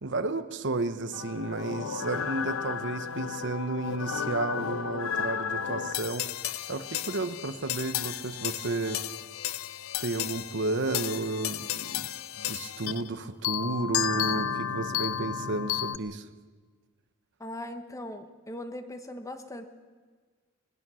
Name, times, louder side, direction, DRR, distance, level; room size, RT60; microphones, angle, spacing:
voice 1, 0.0-6.3 6.7-9.0 10.0-12.1 12.4-16.3, right 3 dB, 60° right, 10 dB, 1.0 m, -32 dB
sound 1, 1.1-13.1 13.4-16.0, left 9 dB, 70° left, 0.5 m, -33 dB
voice 2, 17.4-19.6, left 1 dB, 15° left, 7 dB, 1.3 m, -39 dB
21.0 x 20.5 x 6.3 m, 1.5 s
head